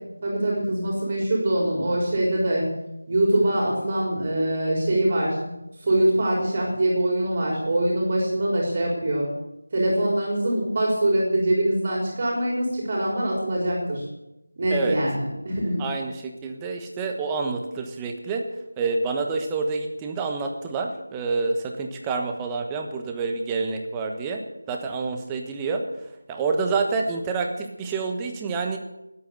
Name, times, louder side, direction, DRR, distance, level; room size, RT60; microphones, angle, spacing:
voice 1, 0.2-2.7 3.1-5.5 5.8-9.3 9.7-14.1 14.6-15.8, right 1 dB, 30° right, -3 dB, 3.9 m, -23 dB
voice 2, 15.8-18.4 18.8-24.4 24.7-25.8 26.3-28.8, right 4 dB, 10° right, 3 dB, 1.2 m, -28 dB
20.5 x 8.6 x 6.8 m, 0.92 s
figure-of-eight pair, 170°, 0 cm